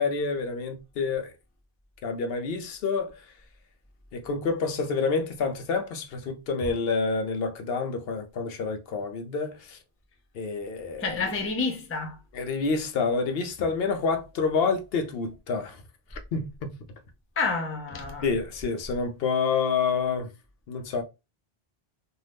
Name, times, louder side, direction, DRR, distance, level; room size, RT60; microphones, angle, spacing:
voice 1, 0.0-1.3 2.0-3.2 4.1-9.8 10.3-11.3 12.3-15.8 16.1-16.7 18.2-20.3 20.7-21.0, left 4 dB, 70° left, 0.8 m, -28 dB
voice 2, 11.0-12.2 17.4-18.3, left 4 dB, 20° left, 0.4 m, -29 dB
2.7 x 2.3 x 3.3 m
omnidirectional pair, 1.1 m